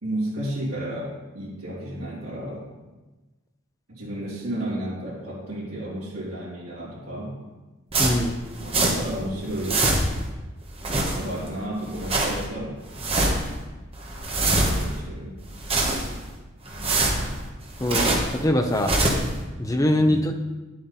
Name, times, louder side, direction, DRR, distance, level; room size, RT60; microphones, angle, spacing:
voice 1, 0.0-2.7 3.9-7.4 8.6-9.9 10.9-12.8 14.6-15.4 19.9-20.2, right 1 dB, 75° right, -11 dB, 3.0 m, -32 dB
sound 1, 7.9-9.2 9.5-10.3 10.7-11.5 11.8-12.5 12.9-13.5 13.9-15.0 15.4-16.3 16.7-18.4 18.7-19.3, right 2 dB, 30° right, 1.3 m, -24 dB
voice 2, 8.0-8.4 17.8-18.9 19.6-20.4, left 1 dB, 15° left, 5 dB, 0.7 m, -22 dB
10.5 x 7.6 x 4.1 m, 1.2 s
head